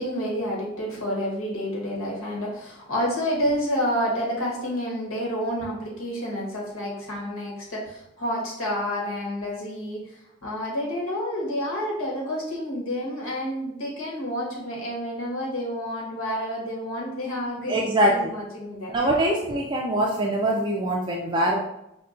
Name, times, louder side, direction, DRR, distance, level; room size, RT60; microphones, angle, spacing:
voice 1, 0.0-18.9, equal, 85° left, -3 dB, 1.2 m, -29 dB
voice 2, 17.7-18.1 18.9-21.6, right 1 dB, 20° right, -1 dB, 0.3 m, -23 dB
5.5 x 2.2 x 2.4 m, 0.84 s
head